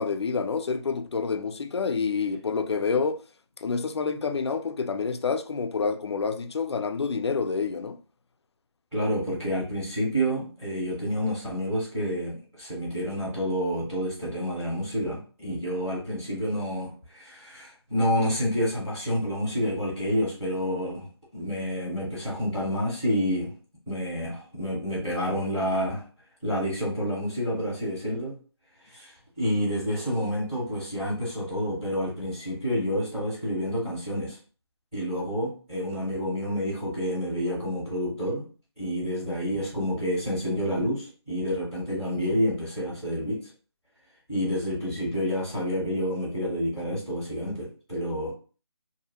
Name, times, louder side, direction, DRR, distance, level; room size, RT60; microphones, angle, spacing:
voice 1, 0.0-3.2 3.6-8.0, left 5 dB, 75° left, 0.4 m, -28 dB
voice 2, 8.9-21.1 21.3-23.5 23.9-26.0 26.4-28.4 28.8-34.4 34.9-38.4 38.8-43.5 44.3-48.3, equal, ahead, 0.3 m, -29 dB
2.6 x 2.2 x 2.8 m
figure-of-eight pair, 165°, 14 cm